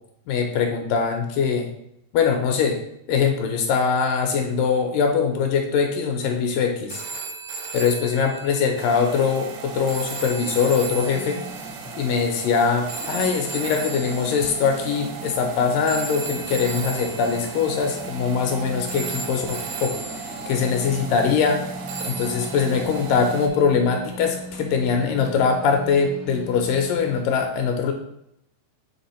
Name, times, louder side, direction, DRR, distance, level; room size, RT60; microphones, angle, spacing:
voice 1, 0.3-1.7 2.1-2.8 3.1-7.0 7.7-11.4 12.0-19.9 20.5-21.6 22.0-27.9, left 6 dB, 80° left, 3 dB, 2.1 m, -22 dB
sound 1, 6.9-15.1 15.9-18.6 18.9-21.0 21.9-24.1 25.3-25.4, right 4 dB, 90° right, 1.6 m, -36 dB
sound 2, 8.8-23.5, right 6 dB, 75° right, 2.0 m, -37 dB
sound 3, 11.1-27.2, equal, 60° left, 0.8 m, -39 dB
7.6 x 3.3 x 4.2 m, 0.79 s
omnidirectional pair, 4.2 m